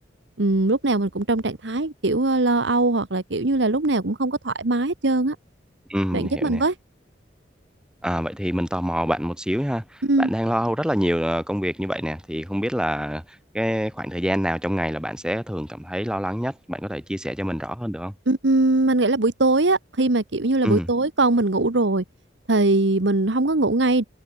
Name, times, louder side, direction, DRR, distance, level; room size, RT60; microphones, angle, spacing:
voice 1, 0.4-5.4 6.1-6.7 10.0-10.3 18.3-22.0 22.5-24.0, right 2 dB, 80° right, 1.4 m, -21 dB
voice 2, 5.9-6.6 8.0-9.8 10.2-13.2 13.5-18.1 20.6-20.9, equal, 5° right, 3.3 m, -26 dB
head